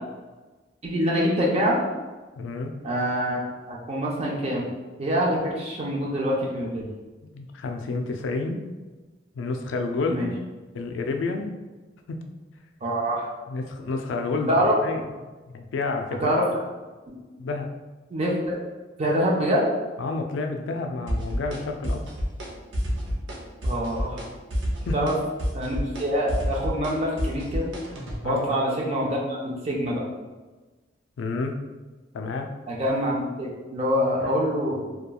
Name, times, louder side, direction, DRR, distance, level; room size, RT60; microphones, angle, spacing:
voice 1, 0.8-1.8 2.8-4.7 5.0-6.9 10.0-10.3 12.8-13.3 14.5-14.7 16.2-16.4 18.1-18.6 19.0-19.7 23.6-24.2 24.9-25.1 25.5-27.7 28.2-30.0 32.7-34.9, equal, 35° right, -3 dB, 0.5 m, -25 dB
voice 2, 2.4-2.7 7.2-8.6 9.3-10.3 10.7-11.5 12.1-12.2 13.5-15.0 15.5-16.5 17.4-17.7 20.0-22.0 24.9-25.1 28.2-28.5 31.2-31.6 32.1-32.5, left 3 dB, 85° left, 4 dB, 0.3 m, -29 dB
sound 1, 21.1-21.6 21.8-22.5 22.7-23.4 23.6-24.3 24.5-28.2, equal, 85° right, 0.6 m, -28 dB
2.9 x 2.2 x 2.3 m, 1.2 s
head